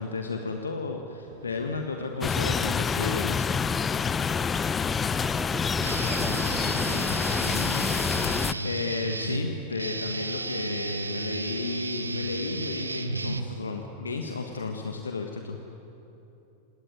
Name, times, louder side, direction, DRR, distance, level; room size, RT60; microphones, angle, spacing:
voice 1, 0.0-3.5 8.6-15.6, left 4 dB, 75° left, 4 dB, 1.6 m, -33 dB
sound 1, 1.2-8.6, right 3 dB, 65° right, 3.2 m, -49 dB
sound 2, 2.2-8.5, left 6 dB, 20° left, 0.6 m, -27 dB
voice 2, 5.2-7.5, right 3 dB, 10° right, 11 dB, 1.3 m, -41 dB
Guitar, 5.8-13.9, right 3 dB, 80° right, 1.1 m, -33 dB
27.5 x 19.5 x 9.6 m, 3.0 s
figure-of-eight pair, 90°, 0 cm